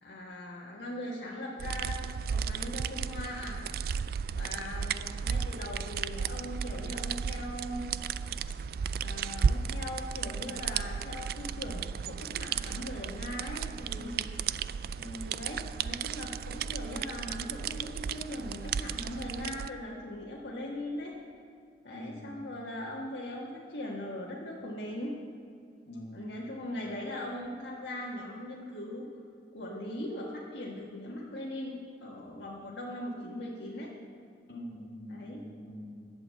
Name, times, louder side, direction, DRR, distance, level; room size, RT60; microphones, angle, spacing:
voice 1, 0.0-3.6 4.3-7.9 9.0-14.2 15.0-21.2 21.8-25.1 26.1-29.0 29.5-33.9 35.1-35.4, left 1 dB, 80° left, -5 dB, 1.6 m, -40 dB
sound 1, 1.6-19.7, right 6 dB, 55° right, 0.3 m, -34 dB
voice 2, 21.9-22.4 25.9-26.3 34.5-36.1, left 1 dB, 60° left, -2 dB, 2.2 m, -44 dB
11.5 x 8.2 x 7.6 m, 2.4 s
head